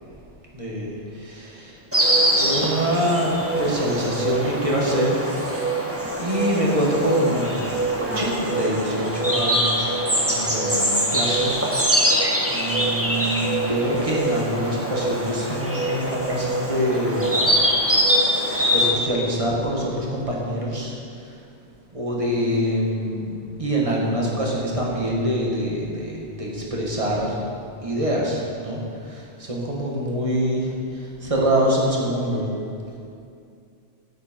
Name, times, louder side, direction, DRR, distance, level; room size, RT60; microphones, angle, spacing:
voice 1, 0.5-1.9 2.3-5.8 6.2-17.4 18.0-18.4 18.7-21.5 21.9-27.5 27.8-32.6, equal, 30° right, -3 dB, 2.1 m, -25 dB
Insect, 1.9-18.9, right 1 dB, 10° right, 1.5 m, -23 dB
14.0 x 9.7 x 4.6 m, 2.5 s
omnidirectional pair, 1.2 m